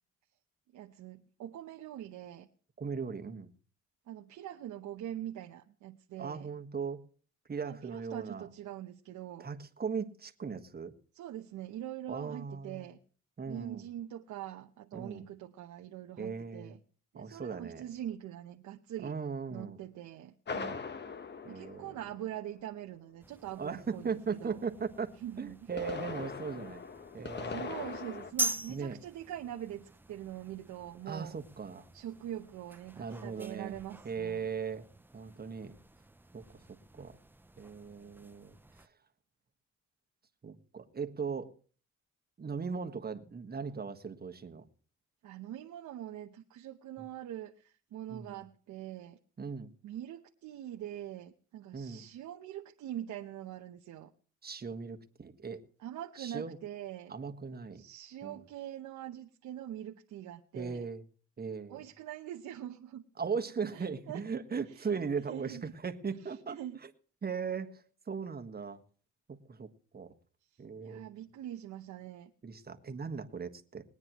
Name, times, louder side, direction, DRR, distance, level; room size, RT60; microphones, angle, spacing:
voice 1, 0.7-2.5 4.1-6.5 7.6-9.5 11.1-13.0 13.5-16.8 17.1-19.1 19.5-20.3 21.5-24.6 25.2-25.7 27.4-31.4 31.9-34.5 45.2-49.2 49.8-54.1 55.8-57.2 57.7-60.9 61.7-63.0 63.7-64.2 64.7-65.6 66.2-66.8 70.8-72.3, right 12 dB, 80° right, 3 dB, 0.9 m, -43 dB
voice 2, 2.8-3.5 6.2-7.0 7.5-8.5 9.4-10.9 12.1-12.9 13.4-13.8 14.9-15.2 16.2-16.7 17.1-17.8 19.0-19.8 20.5-20.8 21.4-21.9 23.6-25.1 25.4-26.8 27.1-27.7 28.7-29.0 31.1-31.8 33.0-33.7 34.0-34.9 35.1-35.8 36.3-36.6 37.0-37.2 37.6-38.6 40.4-41.5 42.4-44.6 47.0-47.1 48.1-48.4 49.4-49.7 51.7-52.1 54.4-55.6 56.2-56.6 57.1-57.8 58.2-58.4 60.5-61.0 61.4-61.8 63.2-66.6 67.2-68.8 69.5-69.7 69.9-70.1 70.6-71.1 72.4-73.8, right 5 dB, 30° right, 7 dB, 1.5 m, -38 dB
sound 1, 20.5-22.6 25.5-28.3, left 5 dB, 35° left, 1.1 m, -41 dB
sound 2, 23.2-38.9, right 2 dB, 5° right, 0.5 m, -44 dB
21.0 x 9.7 x 3.0 m, 0.42 s
cardioid pair, 90°, 30 cm